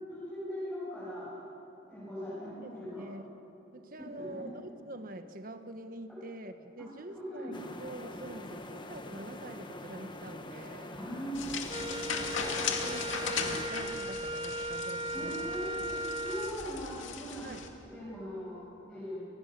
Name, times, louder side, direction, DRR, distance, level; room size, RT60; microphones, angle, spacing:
voice 1, 0.1-1.4 1.9-3.1 4.2-4.5 7.1-7.7 8.2-8.3 10.9-11.6 15.1-17.5 17.8-19.2, equal, ahead, -12 dB, 7.9 m, -40 dB
voice 2, 2.4-3.4 3.7-11.0 11.8-15.9 17.4-17.6, right 1 dB, 45° right, 8 dB, 1.3 m, -45 dB
sound 1, 7.5-13.7, left 1 dB, 25° left, 1.2 m, -45 dB
sound 2, 11.3-17.7, left 6 dB, 85° left, 2.3 m, -38 dB
Wind instrument woodwind instrument, 11.7-16.6, right 1 dB, 25° right, 0.5 m, -37 dB
29.5 x 20.0 x 6.8 m, 3.0 s
head